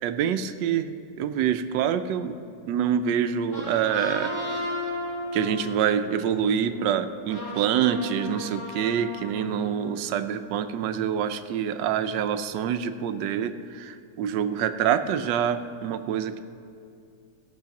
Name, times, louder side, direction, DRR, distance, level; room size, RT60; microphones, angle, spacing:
voice 1, 0.0-2.4 2.7-4.3 5.3-16.4, right 8 dB, 85° right, 10 dB, 1.3 m, -26 dB
sound 1, 3.3-10.2, left 1 dB, 75° left, 3.1 m, -35 dB
16.5 x 7.1 x 5.8 m, 2.4 s
omnidirectional pair, 1.9 m